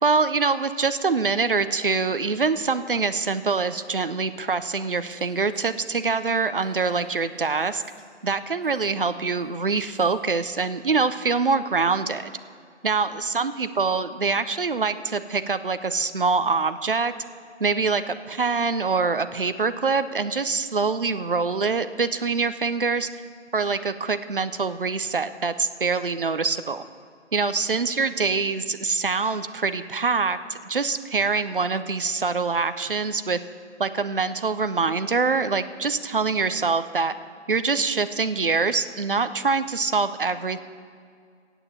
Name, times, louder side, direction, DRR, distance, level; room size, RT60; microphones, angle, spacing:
voice 1, 0.0-7.8 8.2-12.3 12.8-17.1 17.6-23.2 23.5-26.8 27.3-33.4 33.8-37.1 37.5-40.6, right 4 dB, 50° right, 12 dB, 0.6 m, -24 dB
Female speech woman speaking, 5.1-8.3 8.6-10.1, left 2 dB, 10° left, 1.4 m, -54 dB
12.5 x 8.9 x 8.1 m, 2.1 s
figure-of-eight pair, 155°, 36 cm